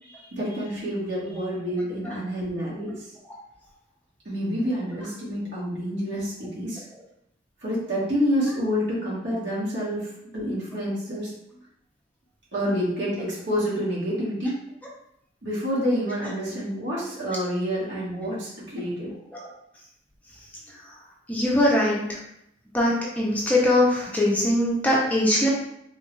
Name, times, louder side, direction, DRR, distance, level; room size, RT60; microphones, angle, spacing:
voice 1, 0.0-3.1 4.2-6.8 7.6-11.3 12.5-14.5 15.4-19.1, equal, 70° right, -6 dB, 1.4 m, -28 dB
voice 2, 21.3-22.2 22.7-25.5, left 1 dB, 10° left, -4 dB, 0.5 m, -22 dB
3.6 x 2.3 x 3.0 m, 0.78 s
head